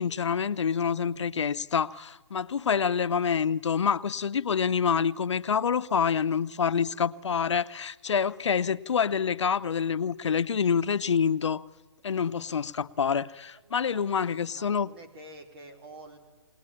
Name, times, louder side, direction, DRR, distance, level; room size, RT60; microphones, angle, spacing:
voice 1, 0.0-11.6 12.0-14.9, left 6 dB, 85° left, 0.7 m, -27 dB
voice 2, 13.5-16.2, right 2 dB, 55° right, 4.2 m, -49 dB
21.0 x 19.0 x 9.9 m
hypercardioid pair, 155°, 15 cm